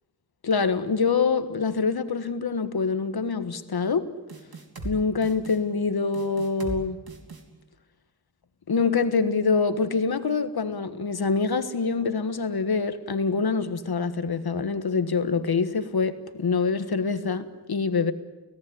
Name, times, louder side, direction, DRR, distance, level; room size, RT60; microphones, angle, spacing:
voice 1, 0.4-4.1 4.8-7.0 8.7-18.1, left 4 dB, 85° left, 1.5 m, -25 dB
sound 1, 4.3-5.0 5.2-5.6 6.1-6.8 7.1-7.4, right 3 dB, 80° right, 3.5 m, -38 dB
29.5 x 17.5 x 10.0 m
wide cardioid pair, 90°, 37 cm